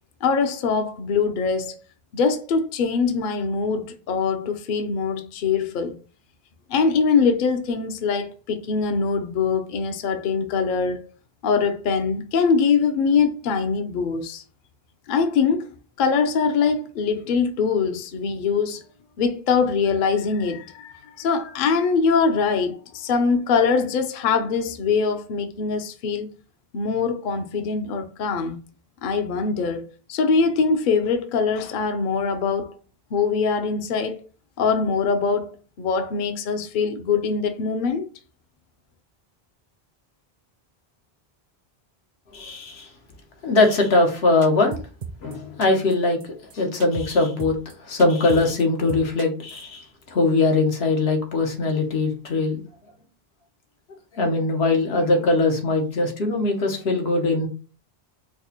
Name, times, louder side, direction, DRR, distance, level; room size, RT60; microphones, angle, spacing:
voice 1, 0.2-1.8 2.1-5.9 6.7-11.1 11.4-14.4 15.1-15.7 16.0-18.8 19.2-26.3 26.7-28.6 29.0-32.7 33.1-34.2 34.6-38.1, left 5 dB, 60° left, 0.6 m, -23 dB
voice 2, 42.3-42.9 43.4-44.8 45.2-46.2 46.5-52.6 54.1-57.5, left 2 dB, 90° left, 1.1 m, -21 dB
sound 1, 44.4-45.3 45.6-45.9 46.2-46.3 46.5-46.6 46.8-47.1 47.4-47.7 48.0-48.6 48.9-49.6, right 6 dB, 55° right, 0.5 m, -35 dB
4.7 x 2.1 x 2.8 m
omnidirectional pair, 1.0 m